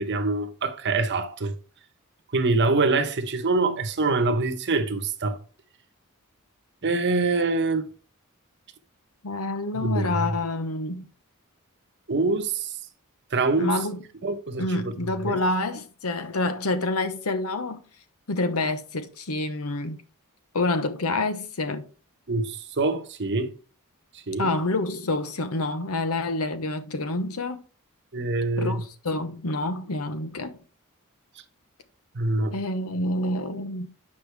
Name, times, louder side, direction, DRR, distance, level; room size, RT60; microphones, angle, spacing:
voice 1, 0.0-1.5 2.3-5.4 6.8-7.9 9.7-10.2 12.1-12.7 13.3-13.8 14.2-14.9 15.3-15.4 22.3-23.5 24.3-24.5 28.1-28.8 32.1-32.6, right 3 dB, 50° right, 1.0 m, -25 dB
voice 2, 9.2-11.1 13.6-14.0 14.6-17.8 18.3-20.0 20.5-21.9 24.4-27.6 28.6-30.5 32.5-33.9, left 2 dB, 70° left, 1.0 m, -27 dB
8.3 x 5.4 x 3.4 m
head